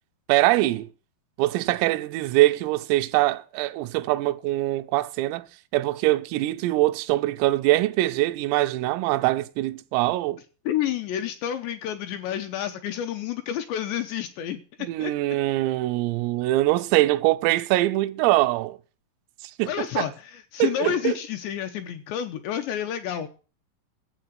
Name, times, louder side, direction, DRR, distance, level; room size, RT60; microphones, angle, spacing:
voice 1, 0.3-0.9 1.4-5.5 5.7-10.4 14.8-18.8 19.6-19.7 20.0-20.1 20.6-21.2, right 17 dB, 85° right, 3.4 m, -23 dB
voice 2, 10.7-14.6 15.0-15.1 19.7-23.3, left 10 dB, 75° left, 2.7 m, -29 dB
12.5 x 8.2 x 7.8 m
omnidirectional pair, 5.8 m